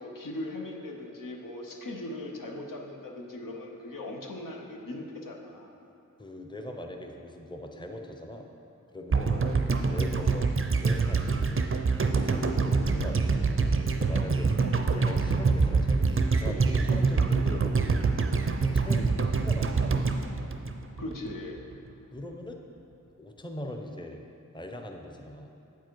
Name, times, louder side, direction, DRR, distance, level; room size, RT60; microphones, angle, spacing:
voice 1, 0.0-5.7 9.3-9.6 12.7-12.9 18.8-19.2 21.0-21.6, left 1 dB, 85° left, 0 dB, 0.8 m, -39 dB
voice 2, 6.2-8.5 8.9-9.4 9.9-10.5 10.8-11.6 12.0-13.5 14.0-18.0 18.6-19.1 19.4-20.1 22.1-22.6 23.2-24.2 24.5-25.5, left 1 dB, 15° left, 3 dB, 0.6 m, -41 dB
sound 1, 9.1-21.3 21.6-21.7, right 4 dB, 40° right, 0.5 m, -25 dB
8.1 x 4.7 x 4.6 m, 2.8 s
wide cardioid pair, 40°, 32 cm